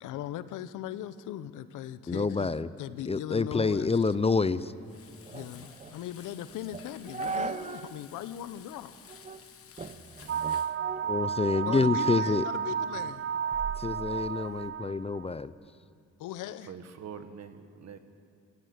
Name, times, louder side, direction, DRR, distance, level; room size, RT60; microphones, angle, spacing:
voice 1, 0.0-4.0 5.3-9.0 11.7-13.3 16.2-16.8, left 11 dB, 85° left, 14 dB, 0.9 m, -39 dB
voice 2, 2.1-2.7 3.1-4.7 11.0-12.4 13.8-15.5, left 4 dB, 20° left, 15 dB, 0.6 m, -27 dB
sound 1, 3.5-8.0 8.3-8.4 9.1-9.4 9.8-11.9 12.3-14.7, right 4 dB, 25° right, 0.9 m, -40 dB
Frying (food), 4.8-10.8, left 8 dB, 50° left, 1.2 m, -53 dB
sound 2, 10.3-15.2, right 8 dB, 45° right, 0.5 m, -32 dB
voice 3, 16.7-18.0, right 7 dB, 60° right, 8 dB, 1.7 m, -44 dB
25.0 x 15.0 x 8.1 m, 2.3 s
cardioid pair, 90°, 30 cm